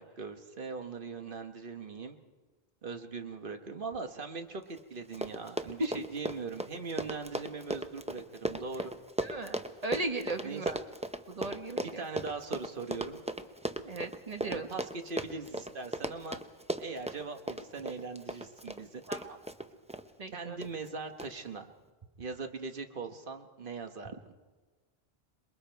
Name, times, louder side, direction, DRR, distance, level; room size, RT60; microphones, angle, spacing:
voice 1, 0.0-2.2 2.8-8.9 10.4-10.6 11.8-13.2 14.4-16.4 16.8-19.0 20.3-21.7 22.2-24.2, right 4 dB, 55° right, 6 dB, 1.3 m, -40 dB
Run, 4.8-4.9 5.1-20.0 20.6-20.9 21.2-21.3, right 1 dB, 10° right, 0.5 m, -37 dB
voice 2, 9.2-10.8 11.3-12.1 13.8-14.7 19.1-19.2 20.2-20.6, right 2 dB, 40° right, 5 dB, 1.3 m, -36 dB
27.0 x 21.5 x 4.5 m, 1.3 s
omnidirectional pair, 1.1 m